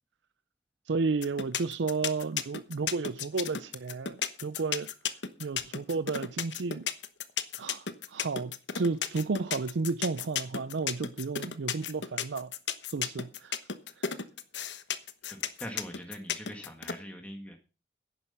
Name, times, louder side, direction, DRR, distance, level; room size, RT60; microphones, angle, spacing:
voice 1, 0.9-4.9 5.4-6.9 7.6-12.5 12.9-13.6 14.0-14.1, right 4 dB, 90° right, 0.5 m, -32 dB
sound 1, 1.2-16.9, left 8 dB, 80° left, 1.2 m, -33 dB
voice 2, 15.3-17.5, equal, 5° left, 1.7 m, -42 dB
11.0 x 10.5 x 5.6 m
head